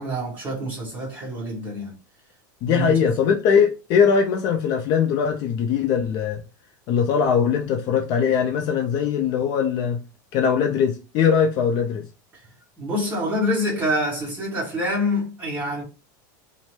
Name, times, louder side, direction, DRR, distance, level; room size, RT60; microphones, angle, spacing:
voice 1, 0.0-2.0 2.6-3.1 12.3-12.4 12.8-15.8, left 1 dB, 15° right, 1.6 m, -26 dB
voice 2, 2.6-6.4 6.9-10.0 10.3-12.1, left 7 dB, 40° left, 0.4 m, -21 dB
3.1 x 2.1 x 3.1 m
supercardioid pair, 150°, 10 cm